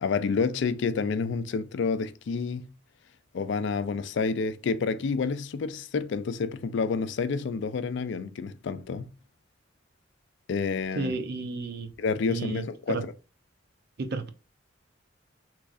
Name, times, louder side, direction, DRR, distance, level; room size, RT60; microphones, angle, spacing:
voice 1, 0.0-2.7 3.3-9.1 10.5-11.1 12.0-13.0, left 5 dB, 65° left, 0.4 m, -29 dB
voice 2, 10.9-11.9 12.3-13.0 14.0-14.3, right 4 dB, 55° right, 0.5 m, -32 dB
3.6 x 3.1 x 2.4 m
head